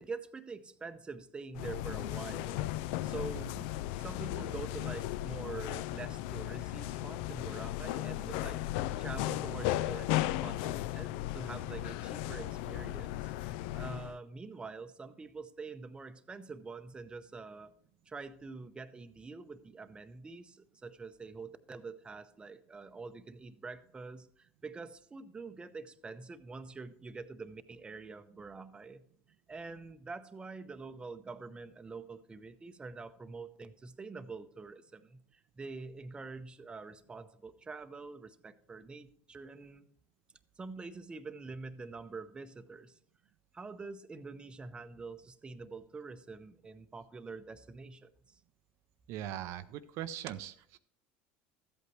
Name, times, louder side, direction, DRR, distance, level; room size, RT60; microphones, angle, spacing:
voice 1, 0.0-2.7 3.0-3.5 4.0-17.7 18.1-29.0 29.5-39.9 40.6-43.0 43.5-48.4, right 4 dB, 15° right, 10 dB, 0.7 m, -46 dB
sound 1, 1.5-14.2, left 15 dB, 75° left, 0.3 m, -36 dB
voice 2, 49.1-50.8, right 11 dB, 60° right, 10 dB, 0.5 m, -41 dB
13.5 x 8.3 x 3.1 m, 0.64 s
supercardioid pair, 110°, 5 cm